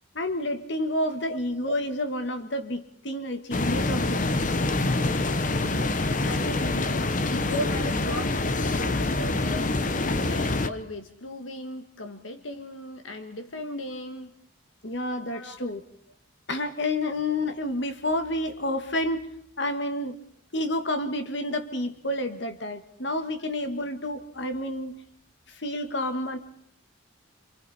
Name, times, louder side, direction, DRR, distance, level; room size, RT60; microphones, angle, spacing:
voice 1, 0.2-4.7 14.8-15.8 16.5-19.2 19.6-20.2 20.5-25.0 25.5-26.4, left 1 dB, 60° left, 7 dB, 1.9 m, -29 dB
sound 1, 3.5-10.7, left 2 dB, 40° left, 0.9 m, -26 dB
voice 2, 5.7-14.3 15.3-15.6 18.4-18.5, left 1 dB, 75° left, 6 dB, 1.5 m, -37 dB
28.5 x 27.0 x 4.3 m, 0.66 s
head